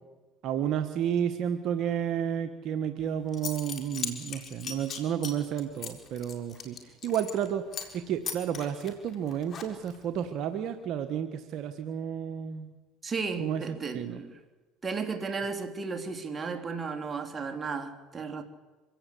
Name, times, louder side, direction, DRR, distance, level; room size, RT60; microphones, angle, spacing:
voice 1, 0.4-7.6 7.9-12.7 13.4-13.6 13.9-14.2, right 9 dB, 60° right, 8 dB, 1.5 m, -31 dB
Zipper (clothing) / Coin (dropping), 3.0-3.1 3.3-7.5 7.7-8.0 8.3-10.0, left 6 dB, 45° left, 4.2 m, -38 dB
voice 2, 13.0-14.4 14.8-18.4, right 4 dB, 25° right, 5 dB, 3.3 m, -34 dB
25.5 x 17.0 x 8.5 m, 1.2 s
supercardioid pair, 90°, 0 cm